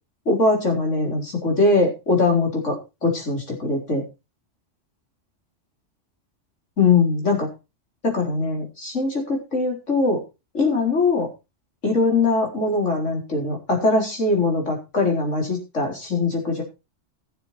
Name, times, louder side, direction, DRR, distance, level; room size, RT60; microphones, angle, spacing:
voice 1, 0.3-2.8 3.0-4.0 6.8-7.5 8.0-10.2 10.5-11.3 11.8-16.6, left 3 dB, 75° left, 0 dB, 4.5 m, -21 dB
15.0 x 7.3 x 4.4 m, 0.28 s
omnidirectional pair, 1.3 m